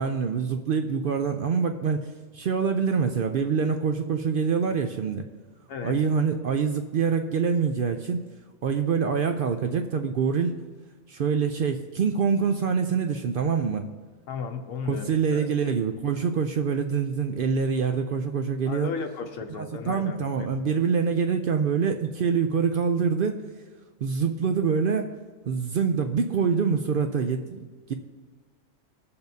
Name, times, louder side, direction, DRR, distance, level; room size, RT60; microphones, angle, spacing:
voice 1, 0.0-2.1 2.3-5.3 5.8-8.2 8.6-10.5 11.1-13.9 14.9-18.9 19.6-23.4 24.0-25.1 25.5-27.9, right 6 dB, 65° right, 6 dB, 0.5 m, -25 dB
voice 2, 14.3-15.5 18.7-20.2, left 5 dB, 90° left, 4 dB, 1.1 m, -34 dB
17.0 x 6.9 x 2.7 m, 1.4 s
omnidirectional pair, 1.4 m